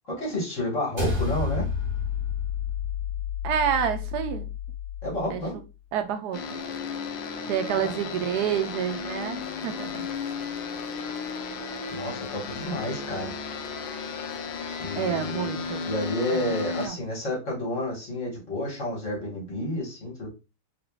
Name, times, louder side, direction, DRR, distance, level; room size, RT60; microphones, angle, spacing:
voice 1, 0.1-1.7 5.0-5.6 7.8-7.9 11.9-13.3 14.8-15.5 15.8-20.3, left 1 dB, 50° left, -3 dB, 2.0 m, -30 dB
sound 1, 1.0-5.5, left 6 dB, 35° right, 1.5 m, -30 dB
voice 2, 3.4-4.5 5.3-5.4 5.9-6.4 7.5-10.1 14.9-15.9 16.3-17.0, right 8 dB, 80° right, 7 dB, 1.2 m, -28 dB
sound 2, 6.3-16.9, left 5 dB, 85° left, 1.3 m, -34 dB
3.8 x 3.5 x 2.4 m, 0.28 s
omnidirectional pair, 1.7 m